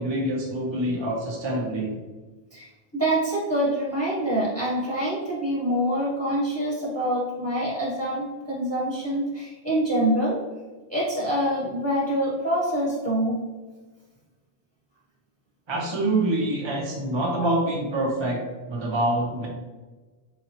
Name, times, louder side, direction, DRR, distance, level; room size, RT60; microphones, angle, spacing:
voice 1, 0.0-1.9 15.7-19.5, right 1 dB, 35° right, -2 dB, 0.5 m, -26 dB
voice 2, 2.5-10.4 10.9-13.4 17.4-17.5, right 1 dB, 15° left, -6 dB, 0.8 m, -25 dB
3.8 x 3.0 x 2.9 m, 1.3 s
omnidirectional pair, 1.2 m